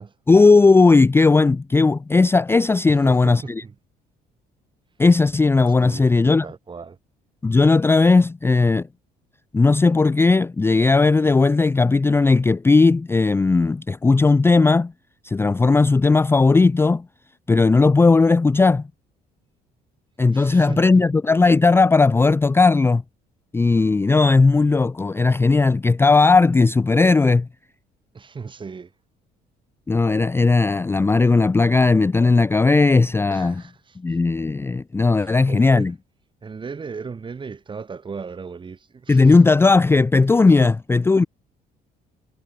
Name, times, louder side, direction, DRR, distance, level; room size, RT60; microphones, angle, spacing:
voice 1, 0.3-3.6 5.0-6.4 7.4-8.9 9.5-14.9 15.2-17.0 17.5-18.8 20.2-23.0 23.5-27.5 29.9-33.5 34.0-35.9 39.1-41.3, left 3 dB, 15° left, 0.5 m, -16 dB
voice 2, 2.9-3.8 5.8-7.0 20.3-21.1 28.1-28.9 33.3-34.0 35.2-35.9 36.4-39.4 40.6-40.7, right 5 dB, 30° right, 4.0 m, -36 dB
cardioid pair, 110°, 17 cm